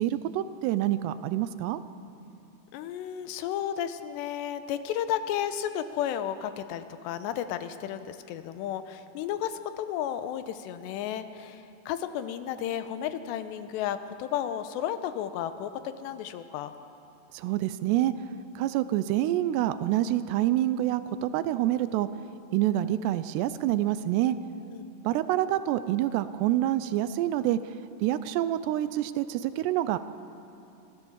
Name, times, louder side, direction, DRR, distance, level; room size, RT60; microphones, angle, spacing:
voice 1, 0.0-1.8 17.3-18.1 18.6-22.1 22.5-24.4 25.0-27.6 28.0-30.0, right 13 dB, 80° right, 13 dB, 2.7 m, -27 dB
voice 2, 2.7-16.7 24.7-24.8, left 10 dB, 85° left, 10 dB, 2.9 m, -33 dB
25.0 x 15.0 x 7.3 m, 2.8 s
omnidirectional pair, 5.0 m